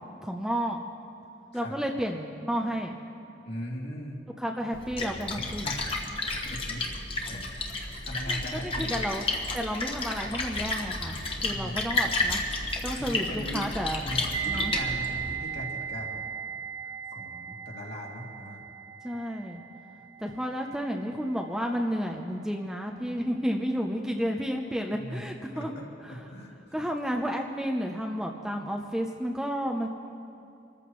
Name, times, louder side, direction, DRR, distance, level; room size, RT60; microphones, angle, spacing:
voice 1, 0.2-0.8 1.5-3.0 4.4-5.7 8.3-9.2 9.5-12.4 12.8-14.0 14.5-14.7 19.0-19.6 20.2-25.7 26.0-26.2 26.7-29.9, equal, 5° right, 1 dB, 0.6 m, -31 dB
voice 2, 3.4-4.2 5.6-5.9 6.3-9.1 11.5-12.3 13.0-13.7 14.0-16.2 16.8-18.6 24.9-25.2 25.5-26.5, equal, 60° left, -4 dB, 2.7 m, -40 dB
Splash splatter, 4.7-15.3, left 2 dB, 30° left, 1.3 m, -32 dB
sound 1, 14.3-23.3 23.5-23.8, right 7 dB, 40° right, 1.5 m, -37 dB
26.5 x 14.0 x 3.1 m, 2.7 s
head